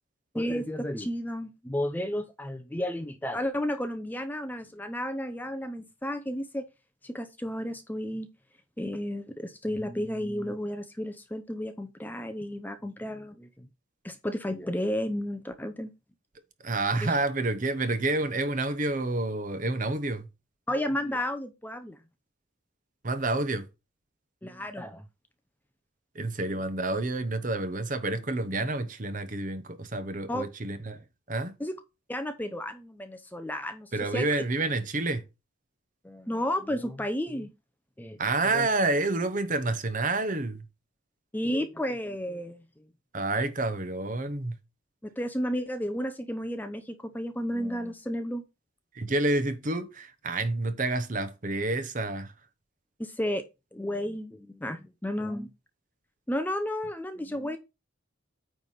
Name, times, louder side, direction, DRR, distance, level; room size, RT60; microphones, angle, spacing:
voice 1, 0.3-6.7 7.0-8.3 8.8-13.7 14.0-15.9 17.0-17.1 20.7-22.0 24.4-25.0 30.3-30.5 31.6-31.7 32.1-34.3 36.0-37.5 38.0-38.2 38.5-38.7 41.3-42.6 45.0-48.4 53.0-53.4 53.7-55.5 56.3-57.6, equal, 10° left, 0.6 m, -32 dB
voice 2, 16.6-20.3 23.0-23.7 26.1-31.5 33.9-35.2 38.2-40.6 43.1-44.5 48.9-52.3, right 2 dB, 40° right, 0.9 m, -29 dB
9.1 x 3.4 x 5.6 m
head